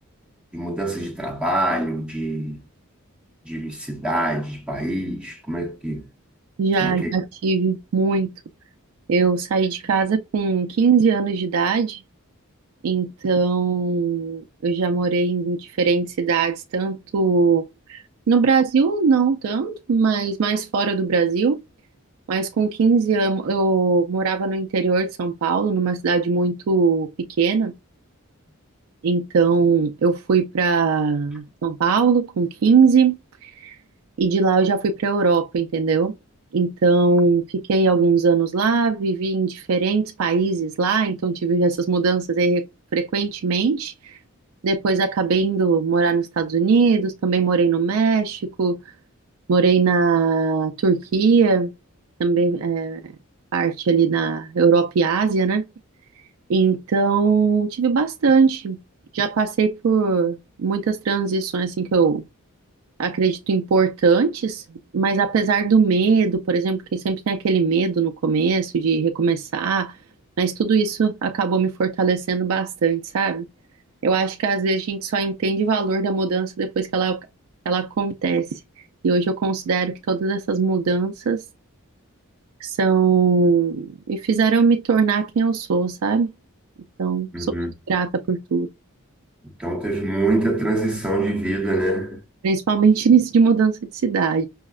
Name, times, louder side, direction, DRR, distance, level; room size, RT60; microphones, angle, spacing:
voice 1, 0.5-2.6 3.4-6.0 6.8-7.1 87.3-87.7 89.6-92.2, right 1 dB, 5° right, 0.7 m, -25 dB
voice 2, 6.6-8.3 9.1-12.0 12.8-21.6 22.3-27.7 29.0-33.8 34.2-36.1 36.5-42.7 42.9-44.2 44.6-48.8 49.5-51.7 52.2-53.1 53.5-55.6 56.5-58.8 59.1-62.2 63.0-64.6 64.9-70.0 70.4-73.5 74.0-77.2 77.7-78.6 79.0-81.4 82.6-86.3 87.0-87.5 87.9-88.7 92.4-94.5, right 5 dB, 75° right, 0.4 m, -20 dB
5.5 x 2.0 x 2.3 m
head